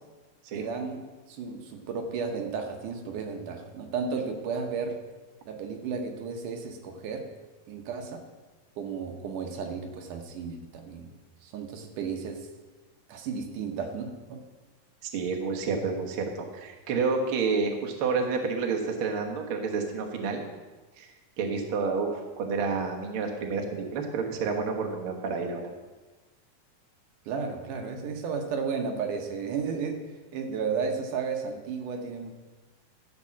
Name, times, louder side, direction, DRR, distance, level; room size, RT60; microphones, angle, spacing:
voice 1, 0.6-5.0 5.5-7.3 7.7-8.2 8.8-11.1 11.4-12.5 13.1-14.4 27.3-30.0 30.3-32.3, right 5 dB, 75° right, 4 dB, 2.4 m, -33 dB
voice 2, 15.0-20.5 21.0-21.1 21.4-25.6, right 4 dB, 55° right, 2 dB, 1.6 m, -29 dB
13.0 x 5.3 x 7.2 m, 1.3 s
omnidirectional pair, 3.9 m